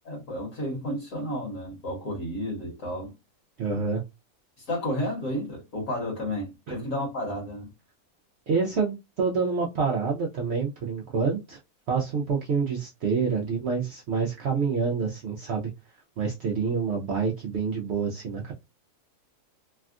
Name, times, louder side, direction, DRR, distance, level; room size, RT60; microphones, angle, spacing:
voice 1, 0.0-3.1 4.6-7.7, left 1 dB, 55° left, 1.5 m, -32 dB
voice 2, 3.6-4.0 6.7-6.8 8.5-11.6 11.9-15.7 16.2-18.5, right 5 dB, 65° right, 0.7 m, -27 dB
3.4 x 2.2 x 2.4 m
omnidirectional pair, 1.7 m